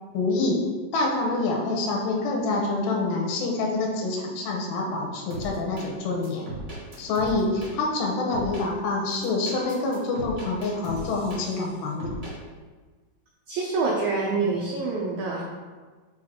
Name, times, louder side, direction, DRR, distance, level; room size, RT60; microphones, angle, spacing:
voice 1, 0.1-6.5 7.0-12.2, left 3 dB, 90° left, 0 dB, 2.8 m, -26 dB
sound 1, 5.3-5.9 6.2-7.7 8.3-8.6 9.1-11.7 12.0-12.3, right 1 dB, 70° right, 0.3 m, -37 dB
voice 2, 13.5-15.4, right 3 dB, 90° right, -2 dB, 1.6 m, -26 dB
6.2 x 4.5 x 3.7 m, 1.4 s
omnidirectional pair, 4.3 m